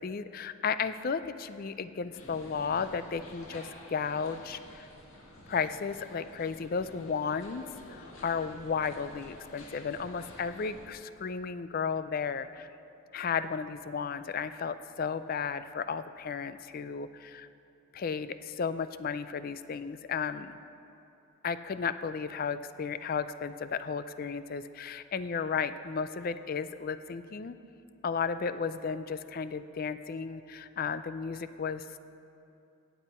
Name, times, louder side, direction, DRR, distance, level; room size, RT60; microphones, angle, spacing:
voice 1, 0.0-4.9 5.5-12.7 13.1-17.5 17.9-20.6 21.4-27.6 28.0-32.0, left 6 dB, 45° left, 13 dB, 0.4 m, -34 dB
sound 1, 2.1-10.9, left 1 dB, 85° left, 1.7 m, -50 dB
17.5 x 8.1 x 4.3 m, 2.7 s
head